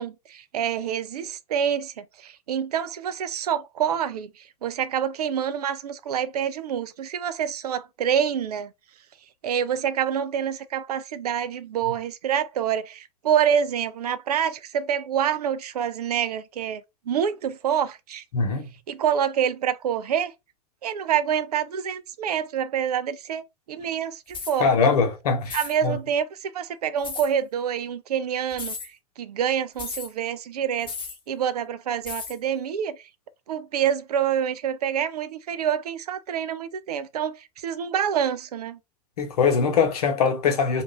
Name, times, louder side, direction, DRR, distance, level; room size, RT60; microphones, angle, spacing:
voice 1, 0.0-8.7 9.4-16.8 17.1-18.2 18.9-20.3 20.8-24.7 25.5-30.9 31.3-33.0 33.5-38.8, right 8 dB, 75° right, 0.4 m, -27 dB
voice 2, 18.3-18.7 24.6-25.6 25.8-26.0 39.2-40.8, left 5 dB, 75° left, 0.9 m, -22 dB
sound 1, 24.3-24.6 25.4-25.8 27.0-27.3 28.5-28.9 29.8-30.1 30.9-31.2 32.1-32.4, left 5 dB, 25° left, 0.8 m, -34 dB
2.5 x 2.3 x 3.5 m
figure-of-eight pair, 75°, 20 cm